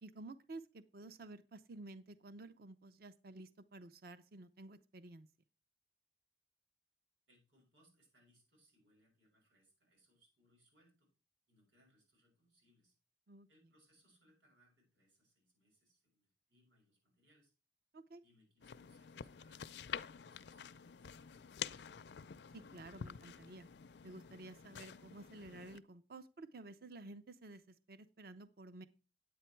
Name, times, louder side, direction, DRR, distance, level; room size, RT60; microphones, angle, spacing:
voice 1, 0.0-5.3 13.3-13.5 17.9-18.2 22.5-23.7 24.0-28.9, right 2 dB, 55° right, 12 dB, 0.6 m, -52 dB
voice 2, 7.3-11.1 11.5-12.9 13.5-17.5 18.2-22.1, equal, 85° right, -1 dB, 6.7 m, -73 dB
sound 1, 18.6-25.8, left 8 dB, 70° left, 0.5 m, -49 dB
9.4 x 8.5 x 4.5 m, 0.33 s
head